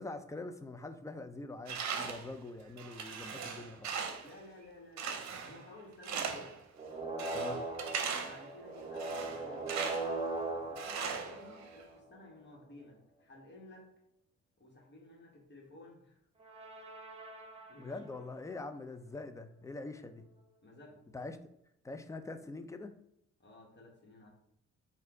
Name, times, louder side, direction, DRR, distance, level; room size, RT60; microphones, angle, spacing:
voice 1, 0.0-3.9 7.3-7.6 17.8-20.3 21.1-21.4 21.8-22.9, left 2 dB, 10° left, 8 dB, 0.4 m, -44 dB
Tools, 1.7-2.3 2.8-4.3 5.0-5.7 6.0-6.6 7.2-8.5 9.0-10.2 10.8-11.8, right 6 dB, 65° right, 0.7 m, -39 dB
voice 2, 4.2-6.6 7.3-7.6 8.2-9.7 10.5-13.9 14.6-16.2 17.5-18.3 20.6-21.1 23.4-24.3, left 2 dB, 35° left, -1 dB, 1.5 m, -54 dB
sound 1, 6.7-12.1 16.4-18.1, right 2 dB, 20° right, 0.8 m, -40 dB
4.3 x 2.6 x 3.7 m, 0.78 s
cardioid pair, 90°, 30 cm